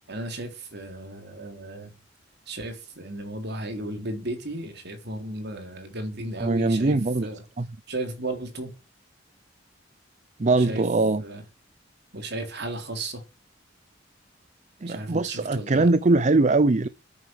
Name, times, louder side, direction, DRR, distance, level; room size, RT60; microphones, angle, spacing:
voice 1, 0.1-1.9 2.5-7.4 7.9-8.7 10.6-10.8 11.2-11.4 12.1-13.2 14.9-15.9, right 1 dB, 60° right, 3.6 m, -34 dB
voice 2, 6.4-7.3 7.6-7.7 10.4-11.2 14.8-16.9, right 2 dB, 40° right, 0.6 m, -21 dB
9.8 x 9.6 x 7.8 m
head